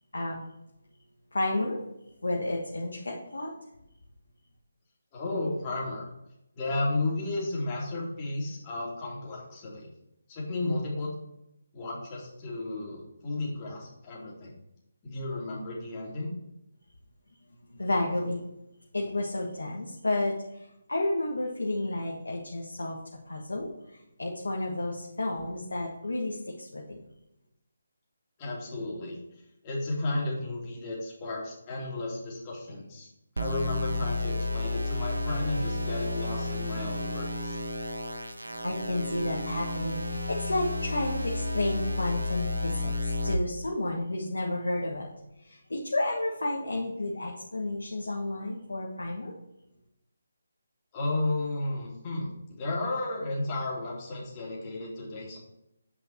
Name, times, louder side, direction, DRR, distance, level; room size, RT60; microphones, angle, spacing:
voice 1, 0.1-0.4 1.3-1.8 2.2-3.5 17.7-18.4 18.9-20.3 20.9-23.0 23.3-27.0 38.4-45.1 45.4-49.3, left 2 dB, 70° left, -1 dB, 1.4 m, -31 dB
voice 2, 5.1-6.1 6.5-9.9 10.3-11.1 11.7-14.5 15.0-16.4 28.4-29.2 29.6-33.1 33.4-37.6 50.9-55.4, left 2 dB, 25° left, -4 dB, 2.8 m, -33 dB
sound 1, 33.4-43.3, left 2 dB, 80° right, 1.0 m, -32 dB
8.8 x 5.4 x 4.4 m, 0.86 s
figure-of-eight pair, 150°, 0 cm